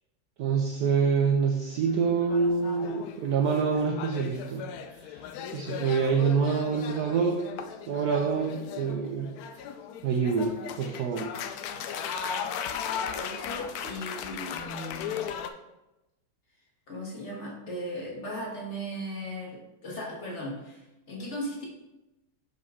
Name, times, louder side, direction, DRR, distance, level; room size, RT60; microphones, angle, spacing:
voice 1, 0.4-4.6 4.9-5.2 5.5-7.4 7.9-9.3 10.0-11.3, right 5 dB, 70° right, 3 dB, 1.0 m, -26 dB
sound 1, 1.7-15.5, left 7 dB, 70° left, 0.9 m, -37 dB
voice 2, 13.1-15.2 16.9-21.6, equal, 40° left, -2 dB, 1.5 m, -37 dB
6.1 x 5.6 x 3.6 m, 0.97 s
omnidirectional pair, 2.0 m